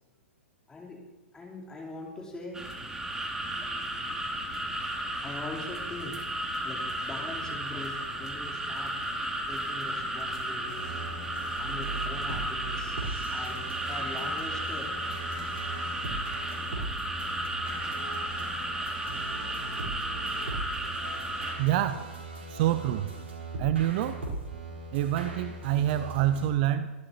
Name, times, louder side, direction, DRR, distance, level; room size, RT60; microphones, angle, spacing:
voice 1, 0.7-1.0 1.3-2.6 5.2-6.3 6.6-9.0 9.5-11.0 11.4-15.0, left 3 dB, 10° left, -4 dB, 4.2 m, -42 dB
sound 1, 2.5-21.5, right 1 dB, 10° right, 2.7 m, -34 dB
sound 2, 10.7-26.5, right 2 dB, 70° right, 5.1 m, -39 dB
voice 2, 21.6-22.1 22.5-23.1 23.6-24.2 24.9-26.9, right 12 dB, 45° right, 12 dB, 0.7 m, -27 dB
24.5 x 14.0 x 3.1 m, 1.2 s
figure-of-eight pair, 110°, 7 cm